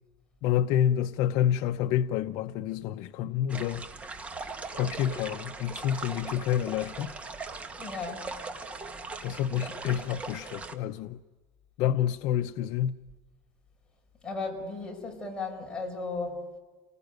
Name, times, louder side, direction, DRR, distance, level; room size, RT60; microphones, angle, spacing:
voice 1, 0.4-3.9 4.7-7.1 9.2-11.2 11.8-12.9, left 10 dB, 55° left, 0.8 m, -28 dB
sound 1, 3.5-10.8, right 3 dB, 20° right, 1.6 m, -40 dB
voice 2, 7.8-8.3 14.2-16.5, left 3 dB, 10° left, 5.7 m, -35 dB
29.5 x 20.0 x 9.3 m
cardioid pair, 150°, 7 cm